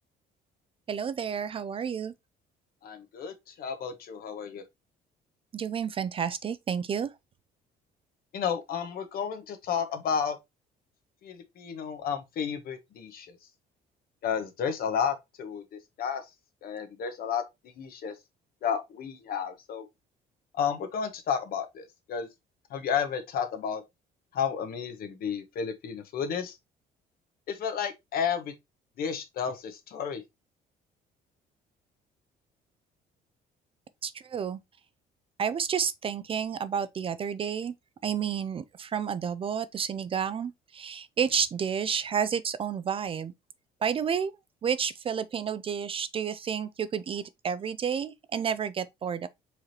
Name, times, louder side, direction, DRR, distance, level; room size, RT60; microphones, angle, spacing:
voice 1, 0.9-2.1 5.5-7.1 34.0-34.6 35.4-37.7 38.0-43.3 43.8-44.3 44.6-49.3, right 7 dB, 35° right, 0.3 m, -30 dB
voice 2, 2.8-4.6 8.3-10.4 11.2-13.4 14.2-16.2 16.6-17.4 17.8-18.1 18.6-19.9 20.5-22.3 22.7-23.8 24.3-26.6 27.5-28.5 29.0-30.2, left 7 dB, 60° left, 1.1 m, -32 dB
4.7 x 3.2 x 2.9 m
cardioid pair, 110°, 17 cm